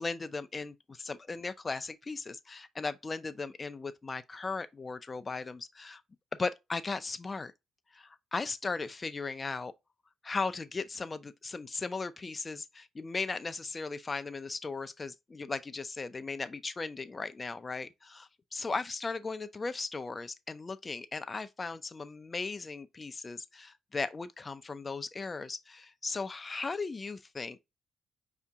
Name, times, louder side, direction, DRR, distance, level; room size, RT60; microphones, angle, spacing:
voice 1, 0.0-6.0 6.3-7.5 7.9-9.7 10.2-27.6, left 4 dB, 30° left, 0.5 m, -37 dB
4.9 x 2.8 x 3.4 m
cardioid pair, 90°, 0 cm